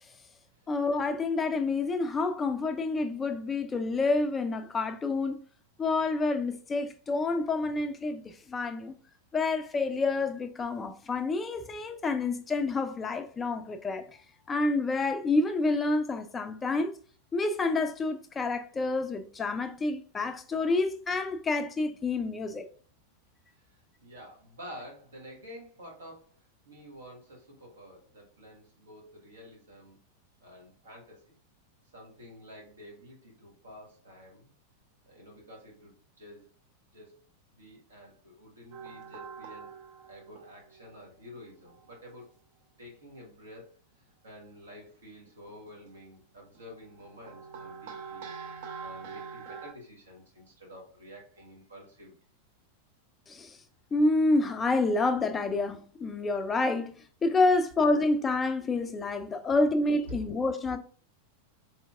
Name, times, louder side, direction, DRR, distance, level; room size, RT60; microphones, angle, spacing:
voice 1, 0.7-5.4 5.8-8.9 9.3-14.1 14.5-16.9 17.3-22.6 53.3-53.6 53.9-60.8, left 3 dB, 20° left, 0.3 m, -28 dB
voice 2, 23.5-30.0 30.4-31.3 31.9-34.5 35.0-36.5 36.9-37.2 37.5-39.7 40.0-42.3 42.8-43.8 44.2-48.3 48.8-52.2 60.1-60.3, equal, 70° right, 1.3 m, -49 dB
sound 1, 38.7-41.0 41.4-41.9 44.1-44.2 45.3-45.9 46.5-49.7, right 5 dB, 50° right, 0.6 m, -44 dB
4.2 x 2.8 x 2.4 m
figure-of-eight pair, 90°, 0 cm